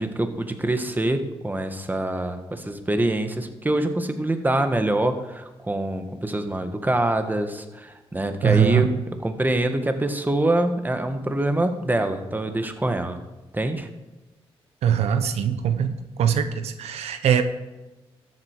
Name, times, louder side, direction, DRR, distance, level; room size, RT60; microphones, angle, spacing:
voice 1, 0.0-13.2 13.5-13.9, right 1 dB, 15° right, 7 dB, 1.5 m, -25 dB
voice 2, 8.4-8.9 14.8-15.9 16.2-17.4, right 8 dB, 90° right, 9 dB, 0.8 m, -21 dB
13.5 x 8.2 x 4.6 m, 1.1 s
cardioid pair, 65°, 11 cm